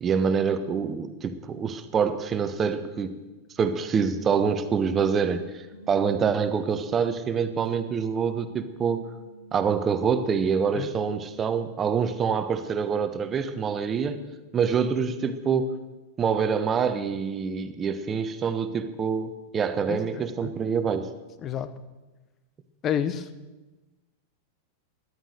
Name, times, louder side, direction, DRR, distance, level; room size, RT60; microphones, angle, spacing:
voice 1, 0.0-3.2 3.6-9.1 9.5-14.2 14.5-15.8 16.2-21.1, right 6 dB, 25° right, 11 dB, 1.1 m, -26 dB
sound 1, 5.7-11.9, right 4 dB, 50° left, 1.9 m, -50 dB
voice 2, 19.9-20.5 21.4-21.7 22.8-23.3, left 9 dB, 30° left, 14 dB, 0.9 m, -30 dB
13.0 x 11.0 x 6.6 m, 1.1 s
figure-of-eight pair, 90°, 0 cm